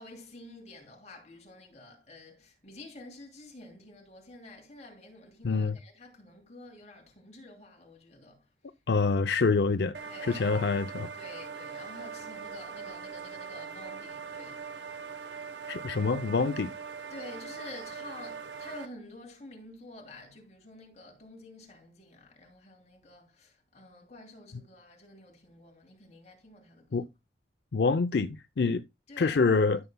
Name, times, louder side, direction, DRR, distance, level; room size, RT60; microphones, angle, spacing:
voice 1, 0.0-8.4 10.0-10.8 11.1-14.6 17.1-27.0 29.1-29.6, left 2 dB, 40° left, 3.0 m, -49 dB
voice 2, 5.4-5.8 8.9-11.1 15.7-16.7 26.9-27.1 27.7-28.8 29.2-29.8, left 4 dB, 75° left, 0.5 m, -26 dB
sound 1, 9.9-18.9, right 6 dB, 85° right, 1.0 m, -41 dB
13.0 x 6.7 x 2.2 m
head